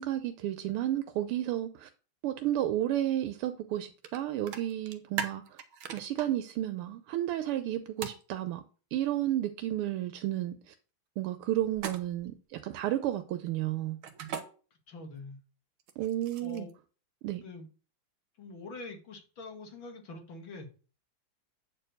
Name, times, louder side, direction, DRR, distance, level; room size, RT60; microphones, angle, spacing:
voice 1, 0.0-1.9 2.2-5.6 5.9-8.6 8.9-10.7 11.2-14.0 16.0-16.7 17.2-17.4, right 13 dB, 90° right, 1.6 m, -32 dB
sound 1, 4.0-4.2 4.5-6.3 8.0-8.2 11.7-12.3 14.0-14.4 15.8-16.7, right 7 dB, 70° right, 1.8 m, -38 dB
voice 2, 14.9-15.4 16.4-16.7 17.4-17.7 18.4-20.7, left 3 dB, 65° left, 2.6 m, -44 dB
8.6 x 4.6 x 6.5 m
omnidirectional pair, 2.4 m